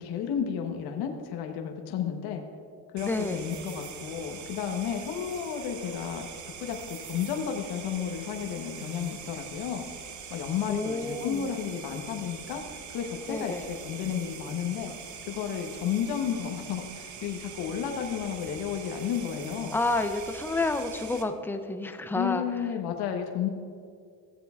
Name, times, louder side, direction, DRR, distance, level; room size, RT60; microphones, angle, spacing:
voice 1, 0.0-2.4 2.9-6.3 6.6-9.8 10.3-14.9 15.3-19.8 22.1-23.5, left 8 dB, 65° left, 3 dB, 1.0 m, -32 dB
voice 2, 3.0-3.5 10.7-11.5 13.3-13.7 19.7-22.4, left 2 dB, 5° left, 7 dB, 0.4 m, -30 dB
sound 1, 3.0-21.2, right 7 dB, 45° right, 0.9 m, -43 dB
14.5 x 7.6 x 2.4 m, 2.2 s
supercardioid pair, 105°, 42 cm